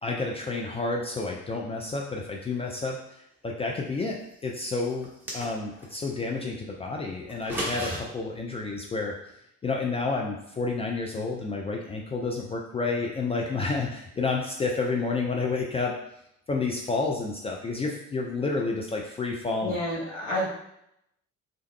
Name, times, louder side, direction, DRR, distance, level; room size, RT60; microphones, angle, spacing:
voice 1, 0.0-9.2 9.6-16.0 16.5-19.8, left 3 dB, 15° left, -1 dB, 0.4 m, -30 dB
sound 1, 5.0-5.9 7.3-8.0, right 1 dB, 5° right, 1.2 m, -33 dB
voice 2, 19.6-20.5, left 1 dB, 90° left, -7 dB, 1.1 m, -29 dB
3.8 x 3.4 x 2.2 m, 0.77 s
figure-of-eight pair, 50°, 39 cm